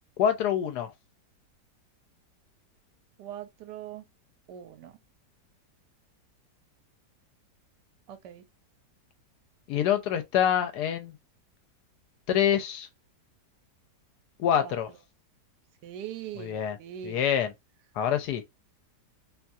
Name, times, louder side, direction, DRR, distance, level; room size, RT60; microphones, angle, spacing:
voice 1, 0.2-0.9 9.7-11.1 12.3-12.9 14.4-14.9 16.4-16.8 17.0-17.5 18.0-18.5, left 9 dB, 75° left, 1.1 m, -26 dB
voice 2, 3.2-4.0 4.5-4.9 8.1-8.4 14.6-14.8 15.8-17.2, right 10 dB, 80° right, 1.2 m, -41 dB
2.9 x 2.3 x 2.5 m
omnidirectional pair, 1.8 m